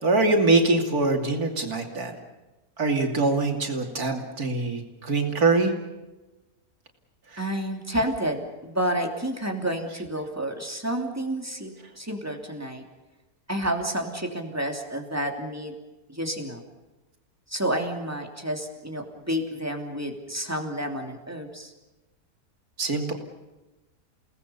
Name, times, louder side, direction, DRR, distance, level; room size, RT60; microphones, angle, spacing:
voice 1, 0.0-2.1 2.8-5.7 7.3-7.4 22.8-23.1, right 3 dB, 85° right, 3 dB, 3.3 m, -23 dB
voice 2, 7.4-12.8 13.5-15.7 16.1-16.6 17.5-21.7, right 1 dB, 10° right, 3 dB, 2.9 m, -30 dB
29.5 x 18.5 x 7.0 m, 1.1 s
omnidirectional pair, 1.5 m